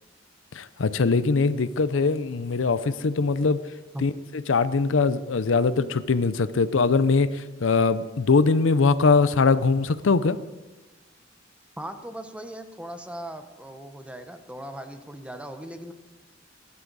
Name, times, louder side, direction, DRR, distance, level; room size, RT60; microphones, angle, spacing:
voice 1, 0.5-3.6 4.0-10.4, left 4 dB, 75° left, 14 dB, 0.6 m, -22 dB
voice 2, 11.8-15.9, right 1 dB, 5° right, 8 dB, 0.9 m, -38 dB
16.0 x 11.5 x 4.0 m, 1.2 s
head